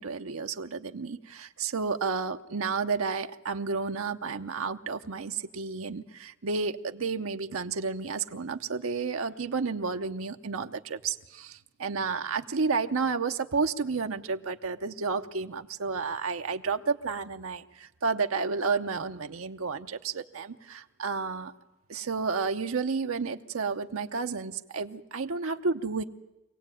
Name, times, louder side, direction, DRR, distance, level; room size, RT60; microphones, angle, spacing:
voice 1, 0.0-21.5 21.9-26.0, right 4 dB, 90° right, 6 dB, 0.8 m, -31 dB
25.0 x 17.0 x 9.1 m, 1.0 s
head